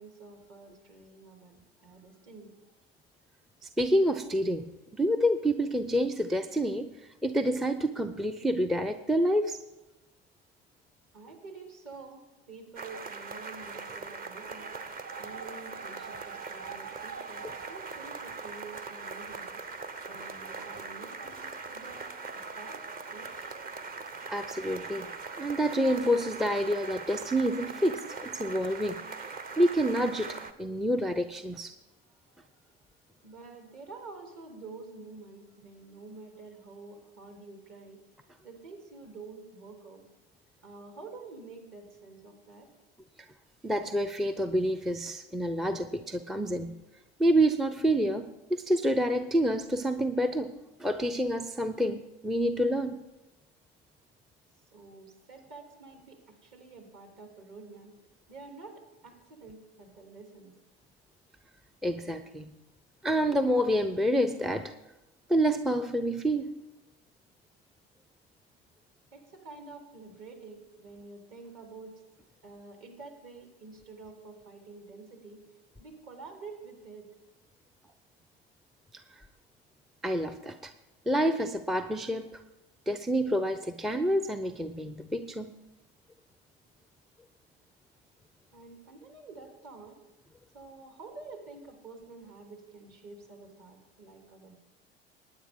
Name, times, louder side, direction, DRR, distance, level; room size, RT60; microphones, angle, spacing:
voice 1, 0.0-2.6 11.1-19.6 20.0-22.8 23.1-23.5 30.7-30.8 32.2-32.8 33.1-38.0 38.4-40.0 40.6-42.7 54.7-57.9 58.3-60.6 69.1-72.0 72.4-75.4 75.8-77.1 88.5-90.0 90.5-94.6, right 3 dB, 50° right, 3 dB, 3.2 m, -48 dB
voice 2, 3.6-4.7 5.0-6.9 7.2-9.6 24.3-25.1 25.4-29.0 29.6-31.8 43.6-46.8 47.2-53.0 61.8-62.5 63.0-64.7 65.3-66.5 78.9-79.0 80.0-80.7 81.1-82.4 82.9-85.5, equal, ahead, 9 dB, 0.4 m, -28 dB
sound 1, 12.8-30.5, right 4 dB, 30° right, 0.9 m, -41 dB
19.5 x 9.5 x 3.7 m, 1.0 s
hypercardioid pair, 75°, 30 cm